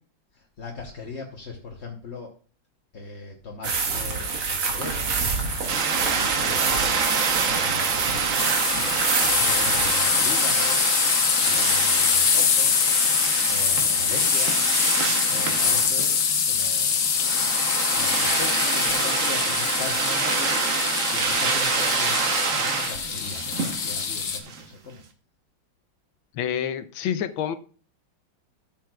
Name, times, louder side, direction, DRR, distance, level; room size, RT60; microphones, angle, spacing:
voice 1, 0.3-2.3 2.9-5.1 5.6-6.6 6.9-8.7 9.5-10.8 11.4-12.9 13.5-14.6 15.3-17.0 17.6-25.0, left 3 dB, 45° left, 0 dB, 1.0 m, -39 dB
sound 1, 3.6-9.9, right 4 dB, 80° right, 2.3 m, -27 dB
sound 2, 5.7-24.6, right 5 dB, 50° right, 1.1 m, -27 dB
sound 3, 8.4-24.4, left 7 dB, 65° left, 1.7 m, -24 dB
voice 2, 26.3-27.6, left 9 dB, 80° left, 11 dB, 1.5 m, -27 dB
13.0 x 7.6 x 2.3 m, 0.40 s
omnidirectional pair, 2.2 m